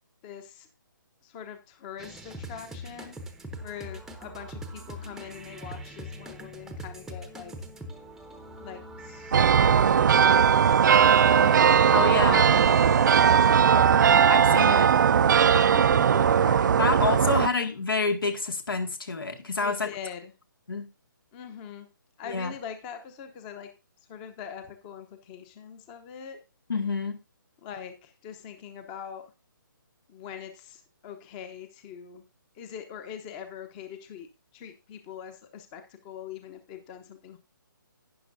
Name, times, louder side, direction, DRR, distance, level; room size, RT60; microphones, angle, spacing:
voice 1, 0.2-0.7 1.2-3.2 3.6-7.5 8.6-13.0 13.2-13.9 15.5-17.0 17.3-17.4 19.6-20.3 21.3-21.9 22.2-23.7 24.1-26.4 27.6-29.3 30.1-32.2 32.5-37.4, left 8 dB, 25° left, 0.9 m, -42 dB
sound 1, 2.0-14.2, equal, 5° right, 0.8 m, -42 dB
sound 2, 9.3-17.5, right 7 dB, 60° right, 0.4 m, -19 dB
voice 2, 11.9-12.6 13.7-14.9 16.8-19.9 20.7-20.9 22.2-22.5 26.7-27.2, left 4 dB, 80° left, 2.1 m, -28 dB
12.0 x 9.3 x 2.7 m
figure-of-eight pair, 145°, 11 cm